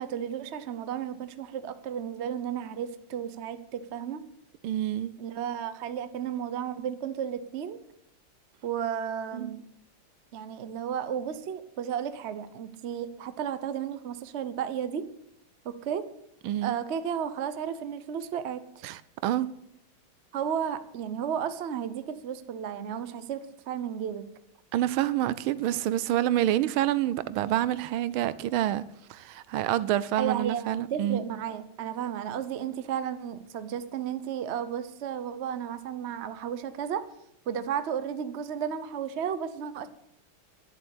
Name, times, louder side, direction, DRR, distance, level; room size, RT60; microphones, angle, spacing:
voice 1, 0.0-4.2 5.2-7.8 8.6-9.6 10.3-15.1 15.6-16.1 16.6-18.8 20.3-23.4 23.7-24.3 30.2-37.0 37.5-39.9, right 8 dB, 60° right, 0.7 m, -33 dB
voice 2, 4.6-5.1 9.3-9.5 16.4-16.7 18.8-19.5 24.7-28.8 29.1-31.2, right 13 dB, 80° right, 1.4 m, -27 dB
11.0 x 7.7 x 8.2 m
omnidirectional pair, 2.3 m